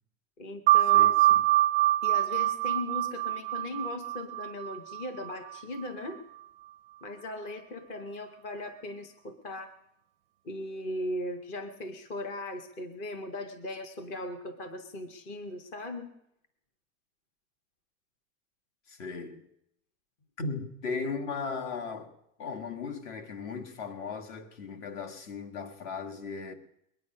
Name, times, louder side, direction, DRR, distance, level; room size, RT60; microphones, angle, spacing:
voice 1, 0.4-1.3 2.0-6.2 7.0-9.8 10.4-16.1, left 1 dB, 20° left, 0.5 m, -38 dB
sound 1, 0.7-5.8, right 15 dB, 45° right, 0.4 m, -25 dB
voice 2, 0.9-1.4 18.9-19.5 20.4-22.1 22.4-26.5, left 4 dB, 55° left, 1.6 m, -37 dB
21.5 x 9.9 x 5.3 m
supercardioid pair, 175°, 42 cm